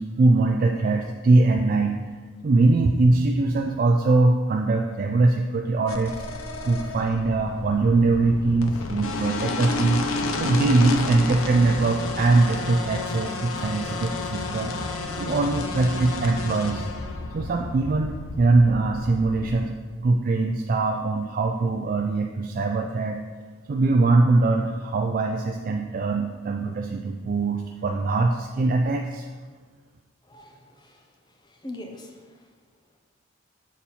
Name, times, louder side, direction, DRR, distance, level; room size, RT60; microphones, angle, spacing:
voice 1, 0.0-2.0 2.4-6.2 6.6-14.7 15.2-16.9 17.3-19.7 20.0-23.2 23.7-29.3, right 3 dB, 45° right, 3 dB, 0.3 m, -22 dB
sound 1, 5.9-19.5, left 2 dB, 90° left, 0.6 m, -31 dB
voice 2, 30.3-31.0 31.4-32.4, left 1 dB, 20° left, 3 dB, 0.6 m, -42 dB
7.2 x 4.1 x 4.3 m, 1.4 s
head